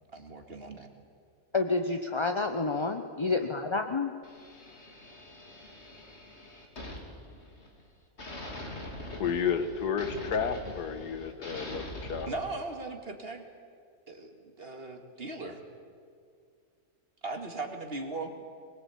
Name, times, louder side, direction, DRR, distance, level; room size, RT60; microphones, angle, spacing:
voice 1, 0.1-0.9 12.3-13.4 14.1-15.6 17.2-18.3, right 3 dB, 40° right, 4 dB, 2.3 m, -38 dB
voice 2, 1.5-4.1, left 3 dB, 25° left, 5 dB, 0.6 m, -29 dB
sound 1, 4.2-7.9 8.2-12.2, left 1 dB, 45° left, 3.2 m, -43 dB
voice 3, 9.2-12.3, left 6 dB, 85° left, 10 dB, 1.9 m, -31 dB
23.0 x 21.5 x 8.4 m, 2.2 s
omnidirectional pair, 1.7 m